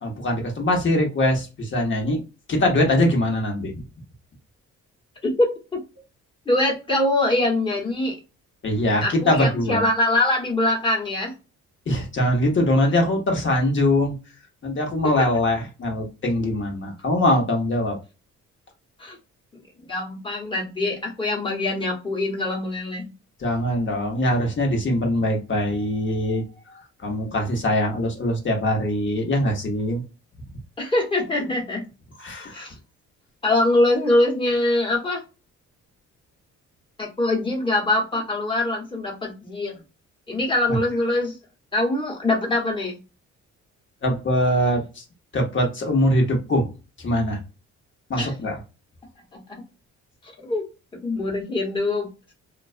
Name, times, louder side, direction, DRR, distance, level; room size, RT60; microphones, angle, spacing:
voice 1, 0.0-2.2 2.5-3.7 8.6-9.9 11.9-14.1 14.6-18.0 23.4-30.0 32.2-32.6 44.0-45.0 45.3-46.7 47.0-47.4 48.1-48.6, left 1 dB, 40° left, 2 dB, 0.9 m, -22 dB
voice 2, 5.2-5.8 6.5-8.1 9.0-11.3 19.0-19.2 19.9-23.1 30.8-31.9 32.5-32.7 33.4-35.2 37.0-39.8 40.3-41.3 41.7-43.0 48.2-48.3 49.3-49.6 50.4-50.6 50.9-52.1, left 2 dB, 15° left, -1 dB, 1.1 m, -23 dB
2.4 x 2.1 x 2.4 m, 0.30 s
cardioid pair, 90°, 30 cm